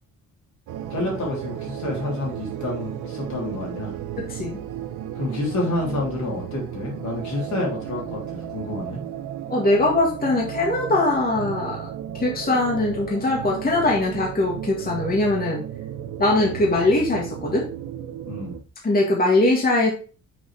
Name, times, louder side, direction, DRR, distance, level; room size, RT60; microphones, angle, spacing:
sound 1, 0.7-18.6, right 10 dB, 90° right, 0.8 m, -34 dB
voice 1, 0.9-3.9 5.2-9.0 18.3-18.6, left 2 dB, 70° left, -2 dB, 3.4 m, -29 dB
voice 2, 4.2-4.6 9.5-11.9 12.1-15.6 16.2-17.7 18.8-19.9, left 2 dB, 30° left, -1 dB, 1.8 m, -21 dB
6.3 x 4.0 x 4.8 m, 0.37 s
cardioid pair, 90°, 30 cm